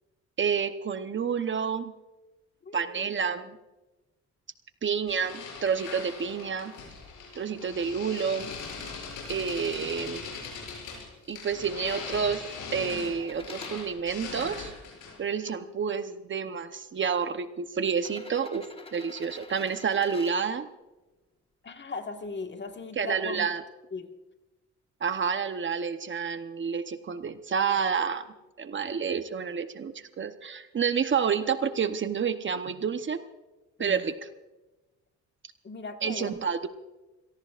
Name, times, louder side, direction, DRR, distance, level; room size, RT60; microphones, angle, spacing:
voice 1, 0.4-1.9 2.7-3.6 4.8-6.7 7.3-8.5 9.3-10.2 11.3-14.7 15.2-18.6 18.9-20.7 23.0-23.6 25.0-28.3 28.6-33.2 33.8-34.3 36.0-36.7, right 6 dB, 40° right, 10 dB, 0.9 m, -29 dB
voice 2, 2.6-3.1 21.6-23.5 23.9-24.1 33.8-34.1 35.6-36.4, left 4 dB, 35° left, 5 dB, 1.6 m, -38 dB
sound 1, 5.1-15.3, left 5 dB, 85° left, 7.2 m, -40 dB
sound 2, 13.2-13.8 14.5-15.5 16.5-16.6 17.9-20.4 22.3-22.4, left 2 dB, 20° left, 1.4 m, -47 dB
28.5 x 18.0 x 2.5 m, 1.1 s
cardioid pair, 90°, 30 cm